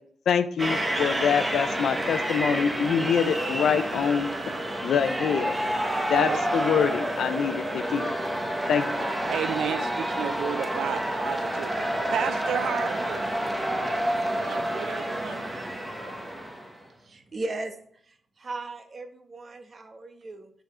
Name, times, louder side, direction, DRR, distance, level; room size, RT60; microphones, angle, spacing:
voice 1, 0.3-4.3 4.8-5.6 6.1-8.2 8.7-8.8, left 7 dB, 80° left, 11 dB, 0.6 m, -25 dB
sound 1, 0.6-16.8, right 1 dB, 20° right, 1.1 m, -29 dB
voice 2, 9.3-11.7 12.1-13.3 14.2-15.4, right 9 dB, 85° right, 15 dB, 0.3 m, -32 dB
voice 3, 16.7-20.5, right 2 dB, 40° right, 6 dB, 1.1 m, -38 dB
5.1 x 4.8 x 6.1 m, 0.63 s
cardioid pair, 100°, 0 cm